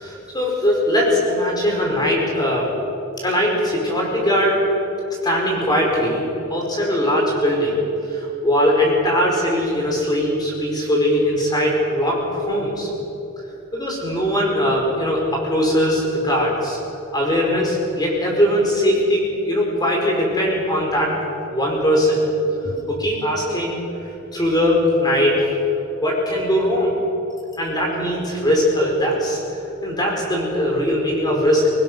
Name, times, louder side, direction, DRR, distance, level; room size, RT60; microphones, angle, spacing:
voice 1, 0.0-2.7 3.2-4.6 5.2-6.2 6.5-7.8 8.1-12.9 13.7-16.8 17.1-21.1 21.5-22.2 22.6-25.4 26.0-26.9 27.6-29.4 29.8-31.7, equal, 20° left, -2 dB, 5.0 m, -20 dB
23.5 x 20.0 x 6.3 m, 3.0 s
head